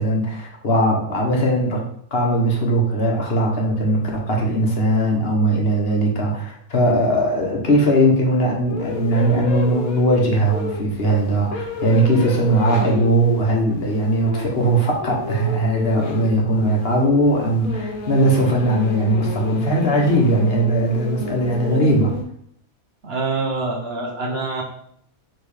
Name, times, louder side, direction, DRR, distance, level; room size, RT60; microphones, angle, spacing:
voice 1, 0.0-1.8 2.1-22.1, right 1 dB, 45° left, -1 dB, 1.3 m, -19 dB
sound 1, 8.7-22.2, left 4 dB, 80° left, 1.5 m, -31 dB
voice 2, 23.0-24.6, right 3 dB, 50° right, 0 dB, 1.0 m, -25 dB
5.2 x 3.7 x 4.9 m, 0.68 s
omnidirectional pair, 1.5 m